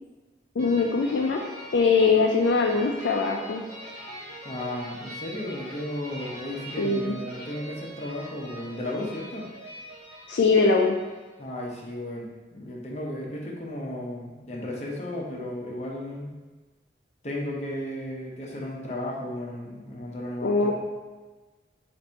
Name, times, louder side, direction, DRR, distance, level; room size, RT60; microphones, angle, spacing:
voice 1, 0.6-1.4 1.7-3.6 6.8-7.2 10.3-11.0 20.4-20.7, left 4 dB, 75° left, 0 dB, 0.4 m, -22 dB
sound 1, 0.6-11.3, right 1 dB, 40° right, 1.2 m, -42 dB
voice 2, 4.4-9.4 11.4-16.3 17.2-20.7, left 1 dB, 35° left, -2 dB, 0.7 m, -34 dB
4.0 x 2.6 x 4.4 m, 1.3 s
head